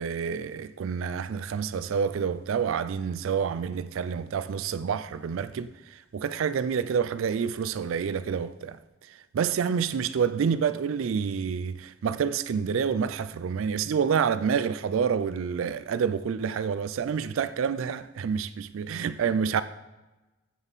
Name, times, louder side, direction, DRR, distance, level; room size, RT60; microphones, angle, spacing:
voice 1, 0.0-8.8 9.3-19.6, right 6 dB, 70° right, 0.3 m, -28 dB
15.0 x 5.5 x 4.0 m
head